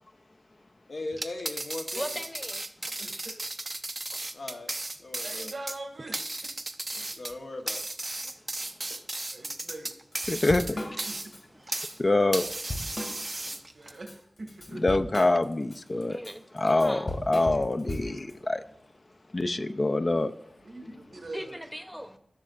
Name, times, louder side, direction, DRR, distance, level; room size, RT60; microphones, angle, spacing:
voice 1, 0.9-2.0 4.3-4.7 5.0-5.5 7.2-7.8, left 2 dB, 80° left, 3 dB, 1.0 m, -38 dB
sound 1, 1.1-12.0 12.3-13.9, right 2 dB, 35° right, 0.5 m, -35 dB
voice 2, 1.9-2.7 8.2-8.3 16.1-17.2 21.3-22.2, equal, ahead, 8 dB, 0.8 m, -38 dB
voice 3, 3.0-3.4 5.2-6.2 9.3-9.9 10.7-11.2 13.7-14.8 16.7-17.0 19.5-19.6 20.6-21.6, right 2 dB, 80° right, 3 dB, 1.7 m, -42 dB
Drum kit / Drum, 9.7-9.8 10.1-11.4 11.8-12.0 12.3-13.6 13.9-18.3, left 1 dB, 60° left, 2.2 m, -37 dB
voice 4, 10.3-10.6 12.0-12.4 14.8-16.2 16.6-18.6 19.3-20.3, left 2 dB, 40° left, 8 dB, 0.4 m, -25 dB
14.5 x 6.4 x 2.5 m, 0.72 s
wide cardioid pair, 70°, 0 cm